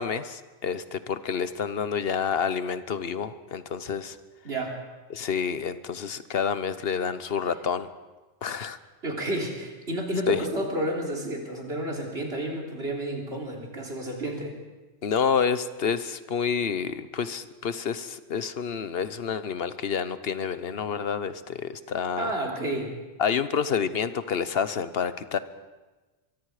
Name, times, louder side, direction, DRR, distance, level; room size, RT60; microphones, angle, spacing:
voice 1, 0.0-4.2 5.1-7.9 8.4-8.8 10.3-10.4 15.0-22.3 23.2-25.4, left 6 dB, 65° left, 13 dB, 1.2 m, -28 dB
voice 2, 4.4-4.8 9.0-14.6 22.2-22.9, right 1 dB, 75° right, 0 dB, 3.7 m, -31 dB
23.5 x 23.5 x 4.9 m, 1.2 s
omnidirectional pair, 1.1 m